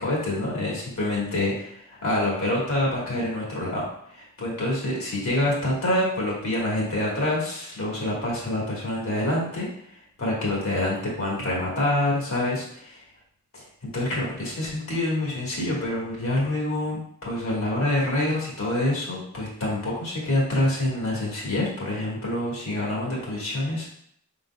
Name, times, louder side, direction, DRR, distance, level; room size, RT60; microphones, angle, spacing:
voice 1, 0.0-9.7 10.2-13.0 13.5-13.6 13.9-23.9, left 1 dB, 65° left, -4 dB, 1.5 m, -26 dB
4.8 x 4.0 x 2.2 m, 0.67 s
head